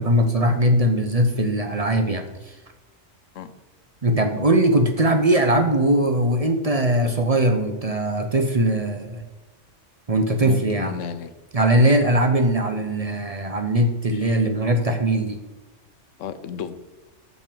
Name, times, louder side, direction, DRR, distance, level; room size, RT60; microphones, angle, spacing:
voice 1, 0.0-2.5 4.0-9.2 10.1-10.9 11.5-15.4, right 1 dB, 35° right, 5 dB, 0.7 m, -20 dB
voice 2, 10.4-11.3 14.1-14.5 16.2-16.8, left 8 dB, 85° left, 12 dB, 1.0 m, -33 dB
6.5 x 6.0 x 6.7 m, 1.1 s
omnidirectional pair, 1.3 m